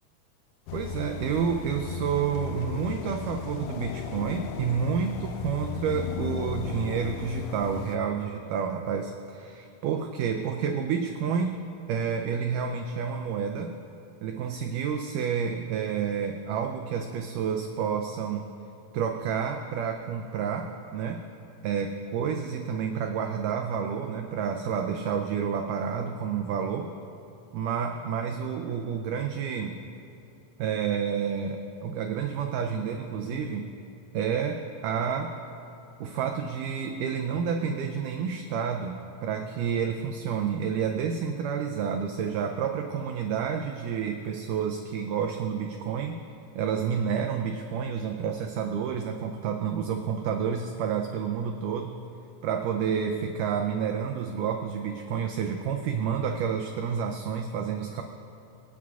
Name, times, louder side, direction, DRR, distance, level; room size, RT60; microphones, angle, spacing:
sound 1, 0.7-8.0, left 8 dB, 85° left, 2.5 m, -36 dB
voice 1, 0.7-11.6 11.9-13.7 14.2-18.5 18.9-21.2 21.6-26.9 27.5-29.8 30.6-33.7 34.1-35.4 36.0-46.2 46.6-52.0 52.4-58.0, right 7 dB, 90° right, 4 dB, 1.8 m, -29 dB
24.5 x 9.2 x 2.4 m, 2.8 s
omnidirectional pair, 4.3 m